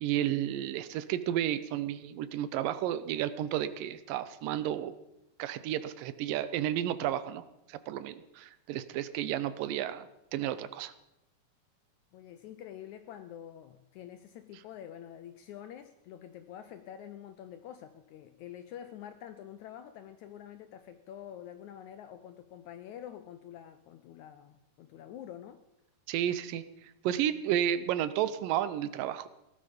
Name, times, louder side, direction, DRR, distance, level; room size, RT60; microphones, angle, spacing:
voice 1, 0.0-4.9 5.4-7.4 7.7-10.9 26.1-26.6 27.0-29.3, right 11 dB, 80° right, 14 dB, 2.4 m, -32 dB
voice 2, 12.1-25.6, left 10 dB, 80° left, 10 dB, 1.7 m, -47 dB
17.0 x 12.5 x 5.2 m, 0.89 s
omnidirectional pair, 4.0 m